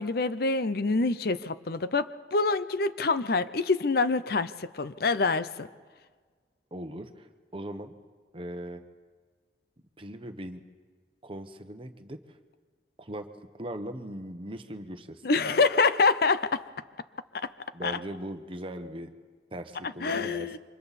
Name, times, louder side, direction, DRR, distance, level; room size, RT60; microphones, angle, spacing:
voice 1, 0.0-5.7 15.2-16.6 17.4-17.5 17.8-18.0 20.0-20.6, left 3 dB, 55° left, 13 dB, 0.6 m, -26 dB
voice 2, 6.7-8.0 8.3-8.8 10.0-10.6 11.2-12.4 13.0-13.3 13.6-15.6 17.7-19.1 19.5-20.5, right 1 dB, 30° right, 7 dB, 1.1 m, -39 dB
28.0 x 25.0 x 4.2 m, 1.5 s
head